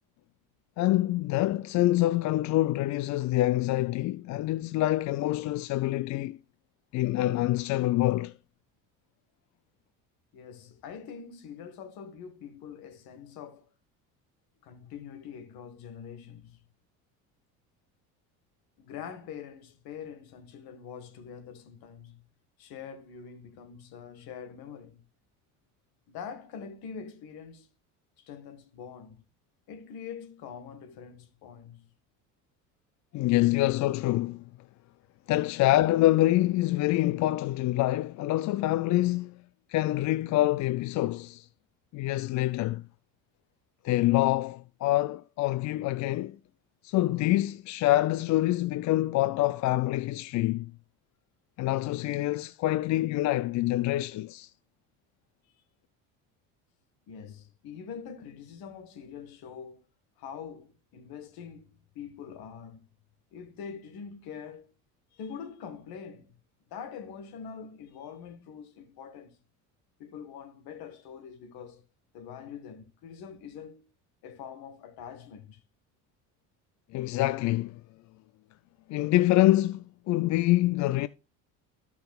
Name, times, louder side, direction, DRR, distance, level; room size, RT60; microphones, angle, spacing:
voice 1, 0.8-6.4 6.9-8.3 33.1-34.4 35.3-39.4 39.7-41.5 41.9-42.8 43.8-46.4 46.8-50.7 51.6-54.5 76.9-77.7 78.9-81.1, left 16 dB, 50° left, 0.4 m, -26 dB
voice 2, 10.3-13.7 14.6-16.6 18.8-22.2 22.6-25.0 26.1-27.7 28.2-29.2 29.7-31.9 57.1-59.8 60.2-62.9 63.3-64.7 65.1-66.4 66.7-69.4 70.0-71.8 72.1-73.9 74.2-75.6, left 7 dB, 65° left, 1.7 m, -44 dB
14.0 x 5.8 x 2.3 m
supercardioid pair, 90°, 39 cm